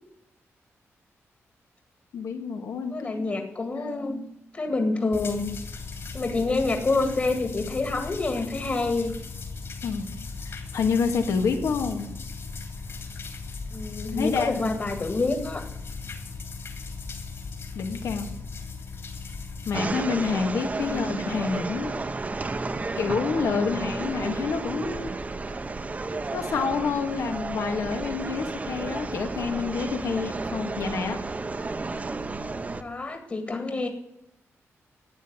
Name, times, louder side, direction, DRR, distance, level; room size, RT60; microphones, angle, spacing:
voice 1, 2.1-3.4 3.7-4.3 9.8-10.1 10.4-12.1 14.1-14.7 17.8-18.3 19.7-21.9 23.0-25.1 26.3-31.2, left 5 dB, 90° left, 5 dB, 2.1 m, -28 dB
voice 2, 2.9-4.2 4.5-5.5 6.1-9.1 13.7-15.6 20.8-21.2 23.5-23.9 32.8-33.9, left 3 dB, 35° left, 5 dB, 2.0 m, -27 dB
sound 1, 5.1-19.7, left 4 dB, 55° left, 3.3 m, -38 dB
sound 2, 19.7-32.8, right 3 dB, 30° right, 0.9 m, -32 dB
13.0 x 9.1 x 9.6 m, 0.81 s
wide cardioid pair, 115°, 5 cm